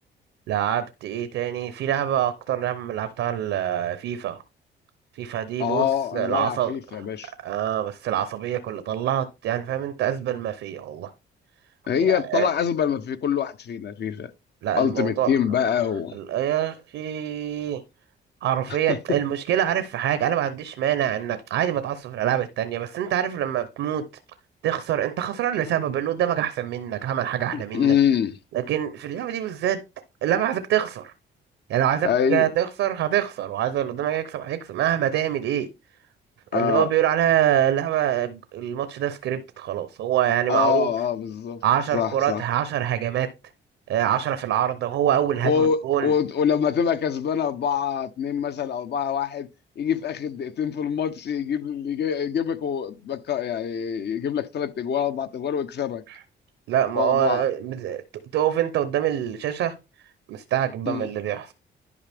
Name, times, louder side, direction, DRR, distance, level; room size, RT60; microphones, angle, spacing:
voice 1, 0.5-4.4 5.1-5.9 6.1-7.1 7.4-11.1 12.0-12.5 14.6-15.3 16.1-17.8 18.4-24.0 24.6-27.9 28.5-29.8 30.2-31.1 31.7-35.7 36.5-40.9 41.6-43.3 43.9-46.1 56.1-56.2 56.7-58.0 58.3-59.7 60.3-61.5, right 11 dB, 80° right, 0.8 m, -25 dB
voice 2, 5.6-7.3 11.9-14.3 14.7-16.2 18.9-19.0 27.5-28.3 32.0-32.5 36.5-36.9 40.5-41.6 41.9-42.4 45.4-49.5 49.8-56.0 56.9-57.4 60.9-61.1, left 8 dB, 60° left, 0.8 m, -25 dB
11.0 x 4.9 x 3.5 m
cardioid pair, 90°, 20 cm